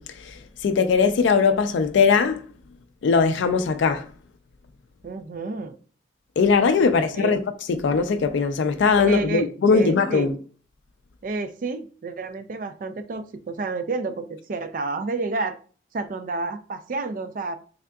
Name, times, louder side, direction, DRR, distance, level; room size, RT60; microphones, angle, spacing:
voice 1, 0.0-2.4 3.0-4.1 6.4-7.4 7.7-10.3, left 5 dB, 70° left, 0.3 m, -20 dB
voice 2, 5.0-5.8 6.9-7.4 9.0-10.3 11.2-15.6 15.9-17.5, right 3 dB, 45° right, 0.3 m, -30 dB
3.6 x 3.4 x 2.3 m
head